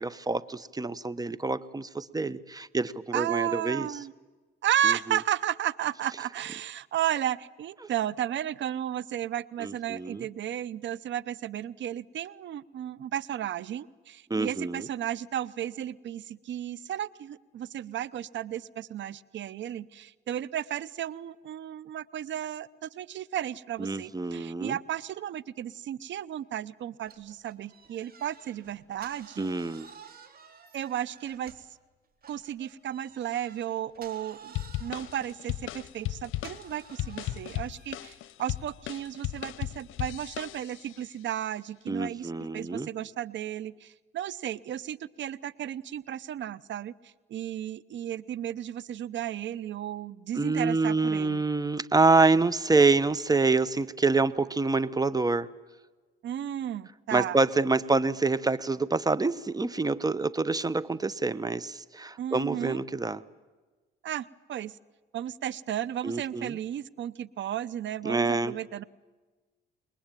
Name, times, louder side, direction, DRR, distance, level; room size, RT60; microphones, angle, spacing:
voice 1, 0.0-3.9 4.8-5.0 9.6-10.2 14.3-14.9 23.8-24.8 29.4-29.9 41.9-42.9 50.4-55.5 57.1-63.2 66.0-66.6 68.0-68.6, right 3 dB, 20° right, 17 dB, 1.1 m, -26 dB
voice 2, 3.1-4.1 4.6-29.5 30.7-31.5 32.3-51.4 56.2-57.4 62.2-62.8 64.0-64.7 65.1-68.8, right 11 dB, 65° right, 20 dB, 0.9 m, -34 dB
sound 1, 27.0-31.8 32.2-38.3, right 6 dB, 50° right, 3.7 m, -53 dB
sound 2, 34.5-41.0, left 15 dB, 80° left, 0.8 m, -36 dB
28.0 x 21.5 x 9.1 m, 1.3 s
cardioid pair, 90°, 20 cm